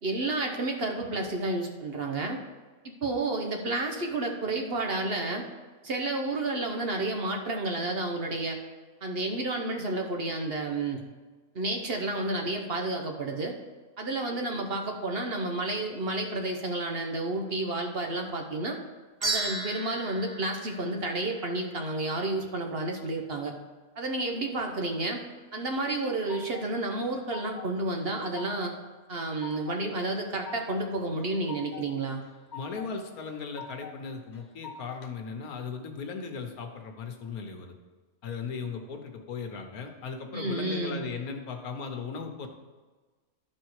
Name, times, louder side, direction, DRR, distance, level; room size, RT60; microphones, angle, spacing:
voice 1, 0.0-2.4 2.8-5.5 5.8-8.6 9.0-11.0 11.5-13.5 14.0-18.8 19.2-23.5 24.0-25.2 25.5-28.7 29.1-32.2 40.3-41.0, right 2 dB, 50° right, 2 dB, 1.0 m, -31 dB
sound 1, 19.2-21.7, right 2 dB, 25° right, 0.7 m, -34 dB
sound 2, 25.7-26.7 27.0-27.8 28.1-28.7 29.1-29.8 30.1-30.8 31.2-31.9 32.2-32.9 33.3-34.0 34.3-35.1, left 6 dB, 60° left, 0.4 m, -44 dB
voice 2, 32.5-37.7 38.2-42.5, left 5 dB, 80° left, 5 dB, 1.4 m, -37 dB
12.0 x 4.4 x 4.7 m, 1.3 s
omnidirectional pair, 1.5 m